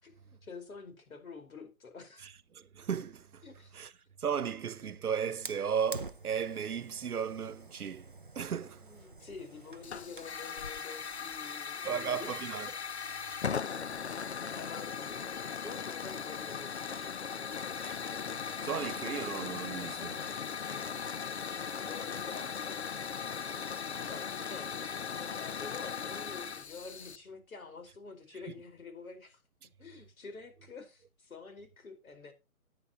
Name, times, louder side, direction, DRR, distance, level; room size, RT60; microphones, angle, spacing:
voice 1, 0.0-2.3 3.4-3.8 8.8-12.3 14.3-17.7 20.7-21.0 21.8-23.1 24.1-29.4 29.8-32.3, left 4 dB, 70° left, 4.8 m, -48 dB
voice 2, 2.2-3.4 3.7-3.9 4.2-8.9 11.8-12.8 13.1-13.6 17.8-18.0 18.6-20.3 28.5-28.6, right 7 dB, 80° right, 1.1 m, -36 dB
Fire, 5.4-10.4, right 3 dB, 40° right, 0.5 m, -48 dB
sound 1, 8.5-16.5, right 2 dB, ahead, 3.0 m, -67 dB
Hiss / Fire, 9.8-27.2, left 6 dB, 50° left, 0.5 m, -38 dB
14.0 x 9.7 x 3.0 m
hypercardioid pair, 170°, 44 cm